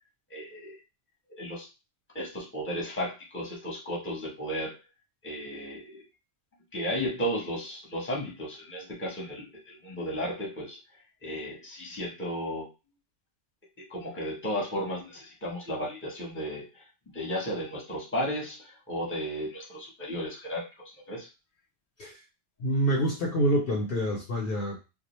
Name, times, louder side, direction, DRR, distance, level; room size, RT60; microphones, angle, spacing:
voice 1, 0.3-0.8 1.3-1.7 2.1-4.8 5.2-6.0 6.7-10.8 11.2-12.7 13.8-16.8 17.1-21.3, equal, 10° left, -4 dB, 0.8 m, -34 dB
voice 2, 22.6-24.8, equal, 60° left, -1 dB, 0.8 m, -27 dB
2.4 x 2.1 x 3.0 m, 0.28 s
omnidirectional pair, 1.2 m